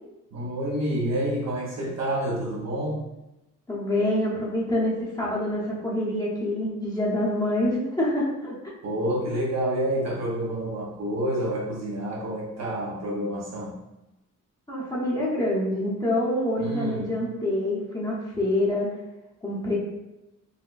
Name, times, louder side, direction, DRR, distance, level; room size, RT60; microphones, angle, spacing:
voice 1, 0.3-3.0 8.8-13.8 16.6-17.2, right 1 dB, 55° right, -2 dB, 0.7 m, -28 dB
voice 2, 3.7-8.5 14.7-18.9 19.4-19.8, left 1 dB, 10° left, -6 dB, 0.8 m, -26 dB
3.9 x 2.1 x 2.5 m, 0.96 s
cardioid pair, 125°, 32 cm